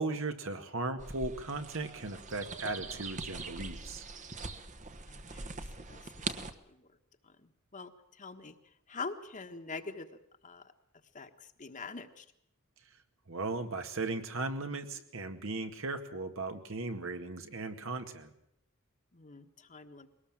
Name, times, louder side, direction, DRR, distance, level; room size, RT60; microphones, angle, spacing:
voice 1, 0.0-4.0 13.3-18.3, right 3 dB, 65° right, 6 dB, 1.9 m, -37 dB
sound 1, 1.0-6.5, right 3 dB, 35° right, 1.2 m, -42 dB
voice 2, 5.1-6.2 6.7-6.9 7.4-7.9 8.2-8.6 8.9-10.1 10.4-10.6 11.1-11.3 11.6-12.2 19.1-20.1, left 4 dB, 35° left, 7 dB, 1.4 m, -44 dB
22.0 x 18.5 x 7.3 m, 0.75 s
head